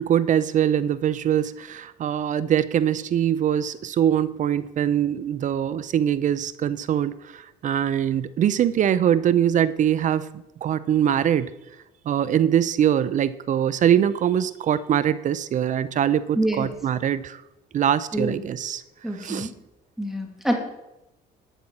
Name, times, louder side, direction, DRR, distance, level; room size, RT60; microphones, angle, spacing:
voice 1, 0.0-10.3 10.6-11.5 12.1-17.4 17.7-18.8 19.2-19.5, right 10 dB, 50° right, 16 dB, 0.5 m, -23 dB
voice 2, 16.3-16.7 18.1-18.4 19.0-19.5 20.0-20.5, right 1 dB, ahead, 2 dB, 2.4 m, -26 dB
12.5 x 5.6 x 7.2 m, 0.95 s
cardioid pair, 110°, 17 cm